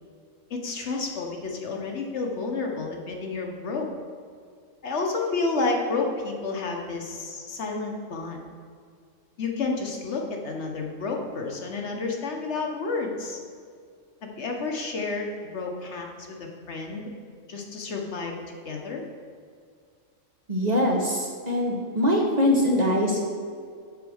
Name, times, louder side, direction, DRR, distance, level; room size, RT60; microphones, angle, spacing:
voice 1, 0.5-3.9 4.8-8.4 9.4-13.4 14.2-17.1 17.5-19.0, left 3 dB, 60° left, 1 dB, 1.1 m, -30 dB
voice 2, 20.5-23.2, left 1 dB, 35° right, -2 dB, 0.8 m, -23 dB
7.0 x 4.2 x 6.2 m, 2.2 s
omnidirectional pair, 1.4 m